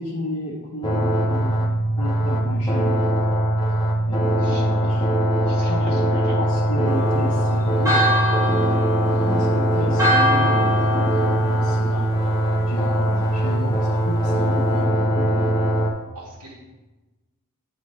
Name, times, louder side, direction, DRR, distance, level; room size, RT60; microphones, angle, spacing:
voice 1, 0.0-1.6 2.0-3.3 4.1-5.0 5.5-8.5 9.0-12.1 12.6-15.5, left 2 dB, 80° left, -4 dB, 0.9 m, -32 dB
sound 1, 0.8-15.9, right 1 dB, 20° left, 0.8 m, -21 dB
voice 2, 4.4-4.7 5.4-6.3 15.5-15.6 16.1-16.6, right 2 dB, 75° right, -8 dB, 1.4 m, -42 dB
Church bell, 6.9-12.6, equal, 15° right, 1.4 m, -25 dB
9.7 x 3.3 x 3.1 m, 1.1 s
head